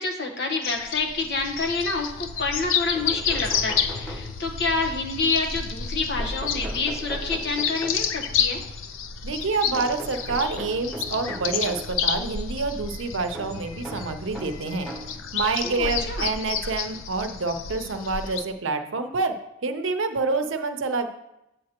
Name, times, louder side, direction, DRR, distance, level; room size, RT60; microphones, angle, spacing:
voice 1, 0.0-8.6 15.6-16.3, left 3 dB, 55° left, 3 dB, 1.1 m, -28 dB
sound 1, 0.6-18.4, left 7 dB, 85° left, 0.5 m, -30 dB
sound 2, 2.6-2.7 2.9-4.7 6.2-8.3 9.7-12.0 13.3-15.2 16.1-16.2 17.5-17.6 17.9-18.0, right 1 dB, 5° left, 1.1 m, -39 dB
voice 2, 9.2-14.9 15.3-19.3 19.6-21.1, right 3 dB, 75° right, 7 dB, 0.7 m, -27 dB
8.0 x 7.7 x 2.9 m, 0.88 s
head